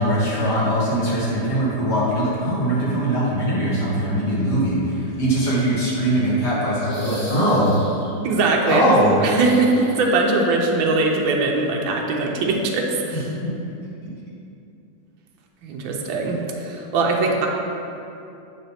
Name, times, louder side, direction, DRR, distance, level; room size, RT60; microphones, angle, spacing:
voice 1, 0.0-7.7 8.7-9.2 13.4-13.5, right 1 dB, 60° left, -7 dB, 2.3 m, -21 dB
sound 1, 6.7-8.2 9.3-10.5 10.7-10.8 12.4-12.5, equal, 80° left, 2.7 m, -34 dB
voice 2, 8.2-8.9 9.2-13.3 15.6-17.5, right 3 dB, 85° right, 0 dB, 1.5 m, -21 dB
7.5 x 4.1 x 5.6 m, 2.7 s
omnidirectional pair, 2.1 m